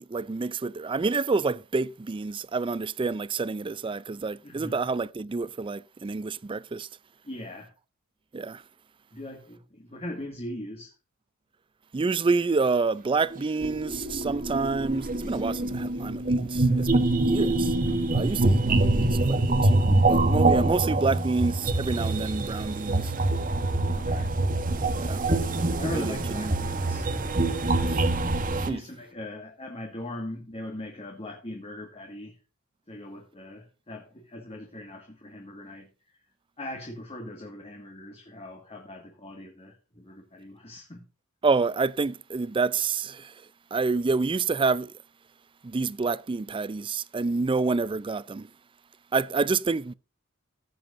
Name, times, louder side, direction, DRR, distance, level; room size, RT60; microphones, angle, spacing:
voice 1, 0.0-6.9 8.3-8.6 11.9-17.7 18.1-23.1 24.9-25.3 25.9-26.5 27.9-28.0 28.6-28.8 41.4-43.3 43.7-44.9 45.6-48.5 49.1-49.9, right 4 dB, 25° right, 0.4 m, -28 dB
voice 2, 4.4-4.8 7.2-7.7 9.1-10.9 18.1-18.3 19.0-19.1 19.9-20.2 23.9-24.3 25.8-27.1 28.7-32.3 32.9-35.9 36.6-41.0, left 1 dB, 30° left, 1.8 m, -40 dB
sound 1, 13.3-28.7, right 2 dB, 40° right, 1.1 m, -25 dB
16.0 x 7.8 x 2.6 m
head